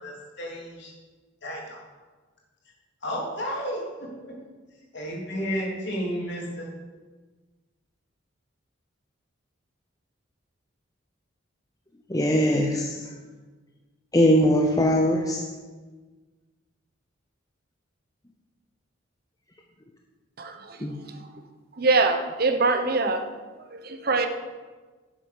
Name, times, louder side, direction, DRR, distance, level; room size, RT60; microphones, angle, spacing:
voice 1, 0.0-0.9 1.4-1.8 3.0-4.3 4.9-6.7, equal, 60° left, -3 dB, 3.3 m, -32 dB
voice 2, 12.1-12.9 14.1-15.4 20.8-21.0, equal, 20° left, 1 dB, 0.8 m, -21 dB
voice 3, 20.4-21.2 21.7-23.2 23.6-24.3, right 3 dB, 50° right, 7 dB, 0.9 m, -24 dB
10.5 x 7.6 x 6.6 m, 1.3 s
head